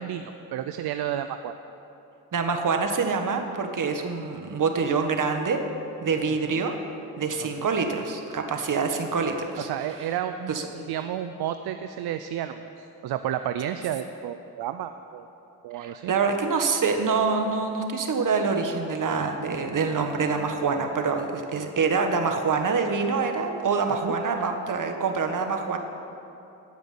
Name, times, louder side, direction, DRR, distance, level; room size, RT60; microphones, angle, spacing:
voice 1, 0.0-1.5 6.5-6.6 7.4-7.7 9.6-15.3 15.6-16.1 24.0-24.1, right 10 dB, 70° right, 9 dB, 0.6 m, -32 dB
voice 2, 2.3-5.6 6.0-6.7 7.2-9.7 10.5-10.7 15.7-25.8, right 4 dB, 50° right, 5 dB, 1.6 m, -26 dB
15.0 x 5.2 x 9.5 m, 2.9 s
supercardioid pair, 65°, 40 cm